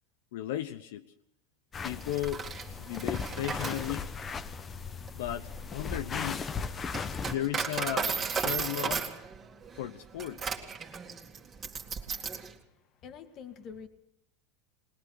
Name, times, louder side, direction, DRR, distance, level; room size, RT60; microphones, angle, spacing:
voice 1, 0.3-1.1 1.8-2.4 2.8-4.1 5.1-6.4 7.2-9.1 9.7-10.4, left 12 dB, 75° left, 0.9 m, -35 dB
sound 1, 1.7-7.3, left 5 dB, 20° left, 0.9 m, -37 dB
Coin (dropping), 2.0-12.5, right 6 dB, 25° right, 2.2 m, -36 dB
voice 2, 12.0-13.9, left 6 dB, 40° left, 1.9 m, -48 dB
21.0 x 20.0 x 6.4 m
supercardioid pair, 130°, 0 cm